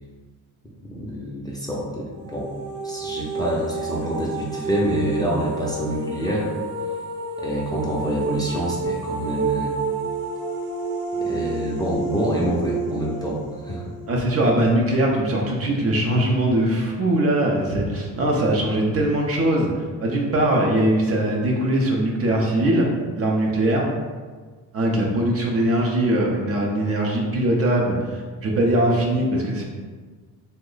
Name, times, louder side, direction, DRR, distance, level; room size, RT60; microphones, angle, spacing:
voice 1, 0.8-2.5 2.8-6.5 7.4-9.7 11.2-13.8, equal, 10° left, -5 dB, 0.5 m, -26 dB
sound 1, 2.1-15.0, right 4 dB, 85° right, 0.6 m, -30 dB
voice 2, 14.1-22.9 23.2-23.9 24.7-29.6, right 1 dB, 40° right, -1 dB, 0.5 m, -21 dB
3.0 x 2.1 x 3.8 m, 1.5 s
cardioid pair, 105°, 39 cm